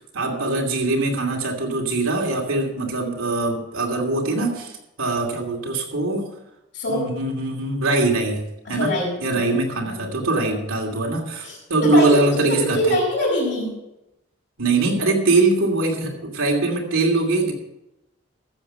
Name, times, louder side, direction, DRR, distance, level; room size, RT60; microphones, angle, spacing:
voice 1, 0.0-6.2 6.9-8.4 8.7-8.9 9.2-12.8 14.6-17.5, right 2 dB, 85° right, 0 dB, 2.7 m, -22 dB
voice 2, 6.7-7.1 8.6-9.4 9.8-10.1 11.4-12.2 12.5-13.8, left 1 dB, 55° left, -9 dB, 4.6 m, -24 dB
14.0 x 7.4 x 5.5 m, 0.92 s
head